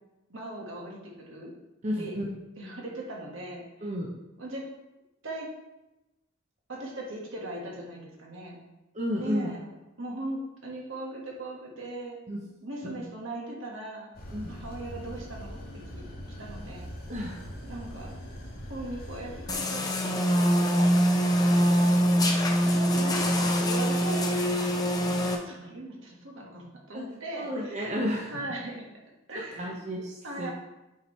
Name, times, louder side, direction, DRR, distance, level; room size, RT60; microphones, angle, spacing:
voice 1, 0.3-1.5 2.0-2.1 2.6-3.9 4.4-4.6 5.2-5.5 6.7-8.6 9.2-9.7 10.0-12.2 12.6-14.1 14.5-16.0 16.4-16.9 17.6-18.1 18.7-20.4 22.5-24.3 25.3-28.0 28.3-28.9 29.3-29.9 30.2-30.5, right 1 dB, 65° right, -2 dB, 1.5 m, -39 dB
voice 2, 1.8-2.3 3.8-4.1 8.9-9.5 12.3-12.4 12.8-13.1 14.3-14.5 17.1-17.5 26.9-27.0 27.4-28.3 29.6-30.5, equal, 35° right, -2 dB, 0.7 m, -32 dB
sound 1, 14.1-19.5, equal, 50° left, 1.4 m, -42 dB
sound 2, 19.5-25.4, equal, 20° left, 0.6 m, -24 dB
8.0 x 4.5 x 3.1 m, 1.0 s
head